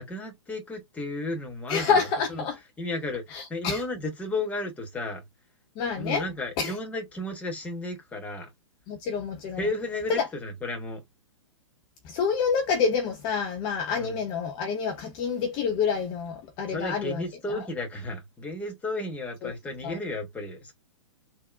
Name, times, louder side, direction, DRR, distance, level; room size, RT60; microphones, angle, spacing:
voice 1, 0.0-2.4 2.8-5.2 6.0-8.5 9.6-11.0 13.9-14.2 16.7-20.7, left 2 dB, 10° left, 0.9 m, -33 dB
voice 2, 1.7-2.6 3.3-3.8 5.8-6.3 6.6-6.7 8.9-9.7 10.1-10.3 12.0-17.6 19.4-19.5 19.8-20.0, left 5 dB, 30° left, 0.6 m, -28 dB
3.6 x 2.0 x 2.4 m
figure-of-eight pair, 115°, 16 cm